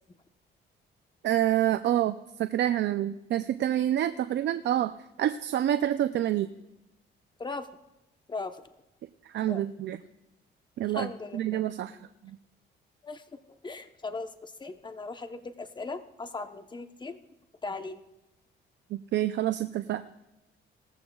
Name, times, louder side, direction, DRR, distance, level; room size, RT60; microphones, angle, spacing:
voice 1, 1.2-4.9 5.2-6.5 9.2-10.0 10.8-12.0 12.2-12.4 18.9-20.0, right 12 dB, 65° right, 10 dB, 0.5 m, -27 dB
voice 2, 8.3-8.6 9.5-9.6 10.9-11.6 13.0-13.2 13.6-17.2 17.6-18.0, left 3 dB, 20° left, 8 dB, 1.0 m, -38 dB
18.5 x 14.5 x 2.4 m, 0.94 s
cardioid pair, 90°, 20 cm